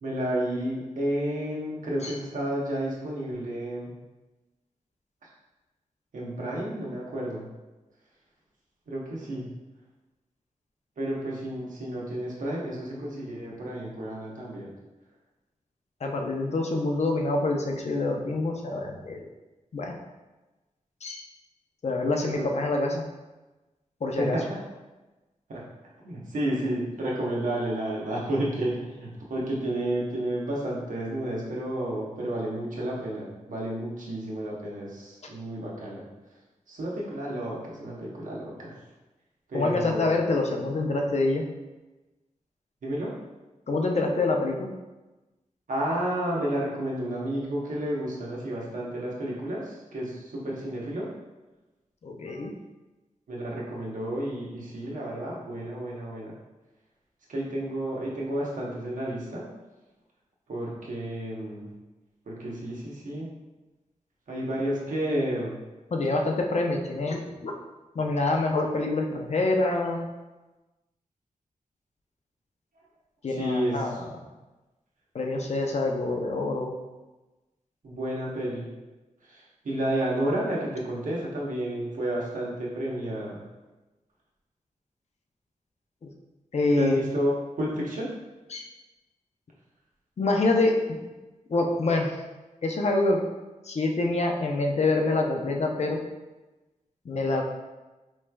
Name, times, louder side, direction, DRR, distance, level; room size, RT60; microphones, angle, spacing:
voice 1, 0.0-3.9 6.1-7.5 8.9-9.5 11.0-14.7 22.2-22.5 24.2-24.6 25.5-25.6 26.0-36.0 36.7-38.7 39.5-40.2 42.8-43.1 45.7-51.1 53.3-56.3 57.3-59.4 60.5-61.7 62.3-63.3 64.3-65.5 73.3-74.0 77.8-78.7 79.2-83.5 86.8-87.3 87.6-88.1, right 1 dB, 90° right, -4 dB, 0.9 m, -31 dB
voice 2, 16.0-19.3 19.7-19.9 21.0-21.2 21.8-23.0 24.0-24.4 39.5-41.4 43.7-44.7 52.0-52.5 65.9-67.5 68.0-70.0 73.2-74.0 75.1-76.7 86.5-87.0 88.5-88.6 90.2-91.0 91.5-92.1 92.6-93.2 93.7-96.0 97.1-97.4, left 2 dB, 55° left, 2 dB, 0.5 m, -26 dB
4.6 x 3.1 x 2.2 m, 1.1 s
wide cardioid pair, 90°, 13 cm